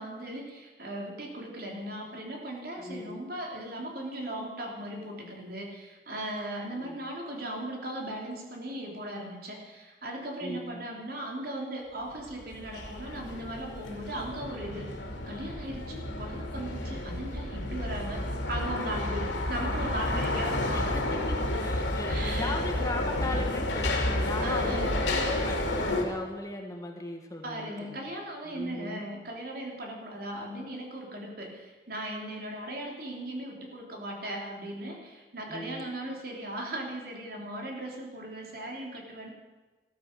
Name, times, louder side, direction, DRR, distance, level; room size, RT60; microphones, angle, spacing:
voice 1, 0.0-14.9 15.3-18.2 18.5-21.0 22.1-22.6 24.4-25.1 27.4-39.3, right 1 dB, 55° right, 0 dB, 3.4 m, -38 dB
voice 2, 2.8-3.2 6.8-7.0 10.4-10.9 20.1-20.2 20.7-28.0 28.5-29.1 35.5-35.9, left 1 dB, 20° left, 2 dB, 1.6 m, -38 dB
sound 1, 12.2-26.0, left 1 dB, 80° left, 2.8 m, -31 dB
14.5 x 13.5 x 6.8 m, 1.3 s
head